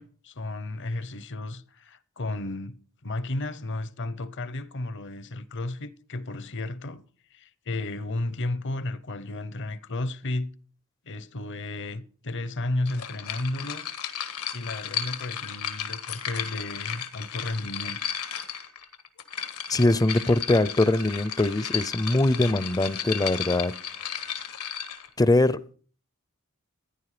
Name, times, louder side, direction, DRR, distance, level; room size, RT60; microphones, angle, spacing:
voice 1, 0.0-7.0 7.3-10.5 11.1-13.9 14.5-18.0, left 2 dB, 55° left, 0.8 m, -33 dB
sound 1, 12.9-25.1, left 8 dB, 85° left, 1.7 m, -34 dB
voice 2, 19.7-23.7 25.2-25.6, left 2 dB, 15° left, 0.5 m, -22 dB
15.5 x 10.5 x 5.0 m
head